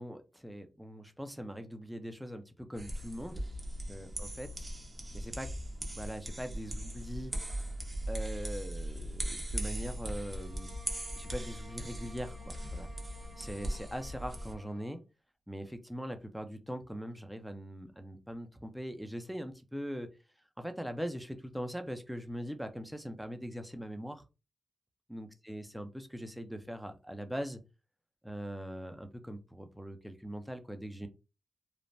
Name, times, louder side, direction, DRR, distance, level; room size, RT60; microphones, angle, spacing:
voice 1, 0.0-3.4 3.9-4.5 5.1-5.5 6.0-7.3 8.1-10.7 11.1-12.9 13.4-15.0 15.5-20.1 20.6-24.2 25.1-27.6 28.2-31.1, equal, 5° right, 7 dB, 0.6 m, -41 dB
sound 1, 2.7-14.5, right 1 dB, 30° right, 1.0 m, -39 dB
sound 2, 10.2-15.0, equal, 55° right, 1.4 m, -55 dB
3.2 x 2.1 x 2.6 m, 0.29 s
cardioid pair, 55°, 0 cm